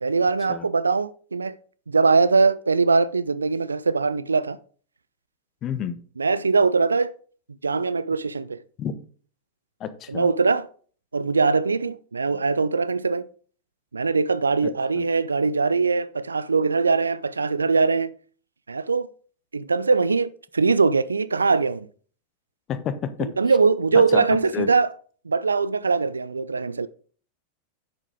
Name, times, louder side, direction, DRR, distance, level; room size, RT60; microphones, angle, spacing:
voice 1, 0.0-1.6 1.9-4.6 6.2-7.1 7.6-8.6 10.1-10.7 11.1-13.3 13.9-18.1 18.7-19.1 19.5-21.9 23.2-24.9 25.3-26.9, right 4 dB, 75° right, 0.5 m, -21 dB
voice 2, 5.6-6.0 8.8-8.9 9.8-10.3 14.9-15.0 22.7-23.3 23.9-24.3 24.5-24.7, left 8 dB, 30° left, 1.1 m, -29 dB
10.5 x 7.3 x 3.7 m
figure-of-eight pair, 90°, 0 cm